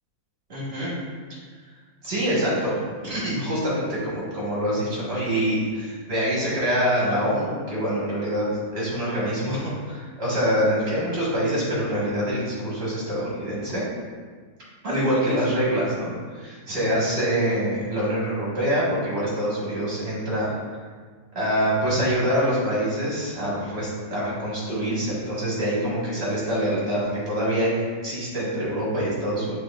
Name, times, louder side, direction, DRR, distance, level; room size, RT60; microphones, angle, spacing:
voice 1, 0.5-0.9 1.3-1.4 2.0-2.8 3.0-13.8 14.8-20.5 21.3-29.6, equal, 45° right, -7 dB, 1.7 m, -25 dB
6.1 x 3.4 x 2.4 m, 1.6 s
omnidirectional pair, 1.6 m